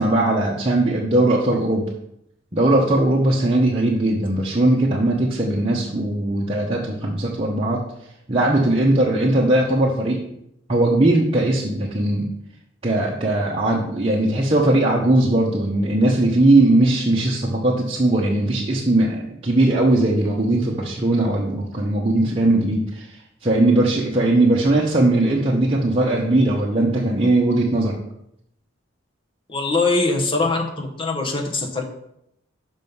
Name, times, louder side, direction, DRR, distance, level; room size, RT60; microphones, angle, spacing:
voice 1, 0.0-1.9 2.5-7.8 8.3-10.2 10.7-12.3 12.8-23.1 23.4-28.0, right 2 dB, 30° right, -4 dB, 0.9 m, -19 dB
voice 2, 29.5-31.8, left 3 dB, 25° left, 2 dB, 1.1 m, -22 dB
6.3 x 5.4 x 5.4 m, 0.77 s
head